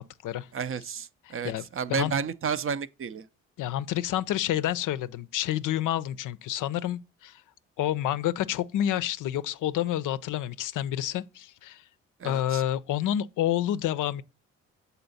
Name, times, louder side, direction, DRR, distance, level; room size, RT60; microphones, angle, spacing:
voice 1, 0.0-0.5 1.3-1.6 1.9-2.1 3.6-7.4 7.8-11.8 12.2-14.2, left 12 dB, 70° left, 0.5 m, -29 dB
voice 2, 0.5-3.3 12.2-12.6, right 6 dB, 40° right, 0.5 m, -32 dB
6.8 x 4.1 x 4.0 m
supercardioid pair, 55°, 32 cm